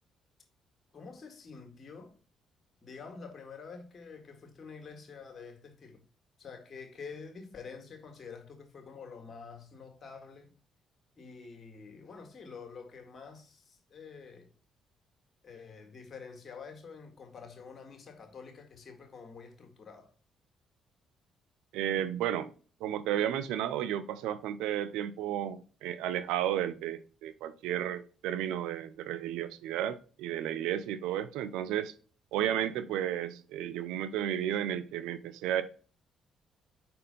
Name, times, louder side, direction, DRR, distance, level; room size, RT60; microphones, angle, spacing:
voice 1, 0.9-2.1 2.8-6.0 6.4-10.5 11.2-14.5 15.4-20.1, left 5 dB, 50° left, 1.8 m, -48 dB
voice 2, 21.7-22.5 22.8-31.9 32.3-35.6, right 11 dB, 80° right, 0.4 m, -33 dB
5.4 x 4.3 x 5.1 m
hypercardioid pair, 50°, 0 cm